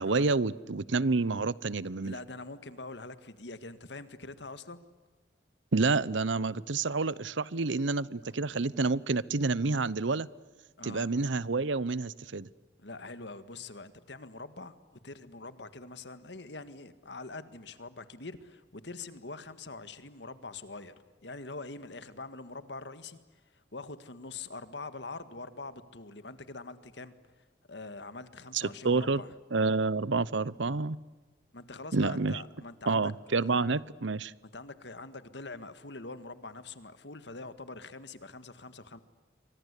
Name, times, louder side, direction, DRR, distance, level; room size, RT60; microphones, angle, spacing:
voice 1, 0.0-2.2 5.7-10.3 10.8-12.5 28.5-29.2 29.5-31.0 31.9-32.4 32.9-34.3, right 3 dB, 80° right, 20 dB, 0.8 m, -29 dB
voice 2, 2.0-4.9 10.8-11.1 12.8-21.0 21.2-23.2 23.7-27.1 27.7-29.3 31.5-33.1 33.4-33.5 34.4-39.0, left 3 dB, 65° left, 12 dB, 1.8 m, -44 dB
29.0 x 24.5 x 8.4 m, 1.3 s
head